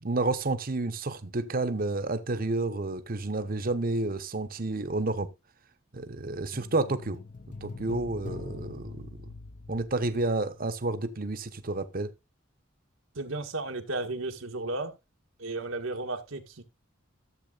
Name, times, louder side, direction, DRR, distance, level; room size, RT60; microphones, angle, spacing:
voice 1, 0.0-5.3 5.9-7.2 7.6-9.3 9.7-12.1, right 2 dB, 45° right, 0.9 m, -30 dB
sound 1, 6.5-11.0 11.2-11.3, left 3 dB, 40° left, 0.6 m, -43 dB
voice 2, 13.1-14.9 15.4-16.6, right 2 dB, 90° right, 1.6 m, -34 dB
14.0 x 7.6 x 2.4 m
head